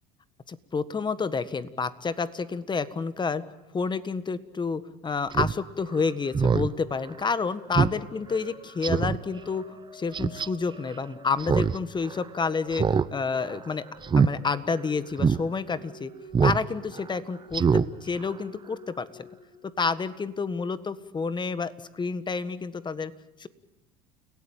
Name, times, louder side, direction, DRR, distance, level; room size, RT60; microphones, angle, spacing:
voice 1, 0.5-3.4 3.7-13.8 14.2-16.1 16.4-19.1 19.8-23.1 23.4-23.5, left 4 dB, 25° left, 14 dB, 1.6 m, -29 dB
Speech synthesizer, 5.3-5.5 5.9-6.0 6.3-6.7 7.1-7.2 7.8-8.0 8.3-8.4 8.8-9.2 10.1-10.5 11.4-11.8 12.1-12.2 12.7-13.1 13.4-13.6 14.0-14.3 14.7-14.8 15.2-15.4 16.3-16.6 16.9-17.1 17.5-17.9 18.2-18.3, right 6 dB, 25° right, 0.9 m, -23 dB
sound 1, 6.0-20.5, left 1 dB, 55° left, 7.0 m, -51 dB
30.0 x 17.5 x 9.0 m, 0.98 s
supercardioid pair, 90°, 19 cm